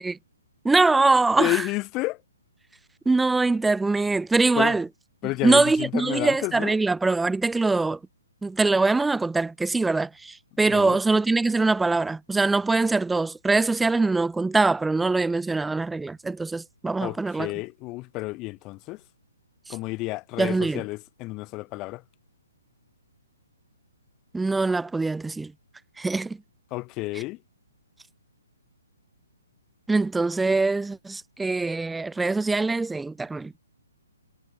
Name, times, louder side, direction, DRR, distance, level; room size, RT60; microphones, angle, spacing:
voice 1, 0.6-1.6 3.1-4.9 5.4-8.0 8.4-17.5 20.4-20.8 24.3-25.5 26.0-26.4 29.9-33.5, right 3 dB, 5° right, 2.1 m, -23 dB
voice 2, 1.4-2.2 4.5-4.8 5.2-6.7 10.7-11.0 17.0-19.0 19.7-22.0 26.7-27.4, left 22 dB, 25° left, 3.4 m, -30 dB
hypercardioid pair, 155°, 0 cm